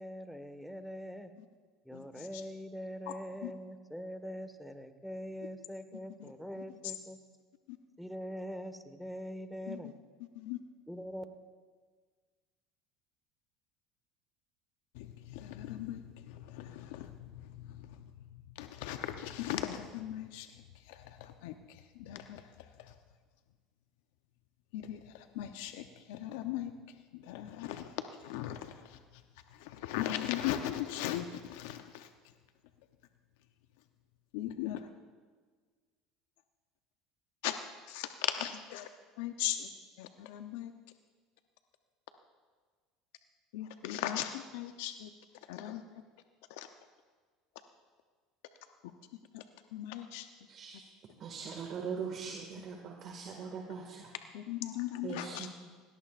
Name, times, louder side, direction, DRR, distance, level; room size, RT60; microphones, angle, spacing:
voice 1, 0.0-1.3 1.8-7.2 8.0-9.9 10.9-11.2, equal, ahead, 9 dB, 1.4 m, -43 dB
voice 2, 1.9-2.4 3.1-3.2 3.4-3.5 6.2-6.3 7.7-7.8 9.7-9.9 10.3-10.6 14.9-22.9 24.7-26.7 27.1-29.2 29.5-32.1 34.3-34.9 37.4-37.6 37.9-38.9 39.2-39.7 40.0-40.7 43.5-45.1 45.5-45.8 46.5-46.7 49.3-49.4 49.7-50.3 54.3-55.5, left 12 dB, 75° left, 8 dB, 0.7 m, -39 dB
voice 3, 50.5-50.9 51.2-54.1 55.0-55.5, right 6 dB, 50° right, 1 dB, 2.0 m, -41 dB
20.0 x 17.5 x 2.5 m, 1.5 s
hypercardioid pair, 85°, 0 cm